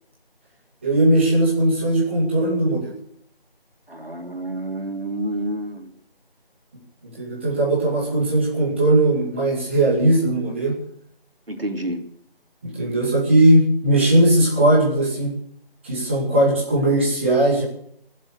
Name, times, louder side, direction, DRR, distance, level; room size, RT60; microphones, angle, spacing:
voice 1, 0.8-2.9 7.0-10.8 12.6-15.3 15.8-17.6, right 1 dB, 10° right, -6 dB, 2.3 m, -18 dB
voice 2, 3.9-5.9 11.5-12.0, right 1 dB, 70° right, 3 dB, 3.2 m, -29 dB
21.5 x 7.6 x 8.4 m, 0.69 s
figure-of-eight pair, 170°, 30 cm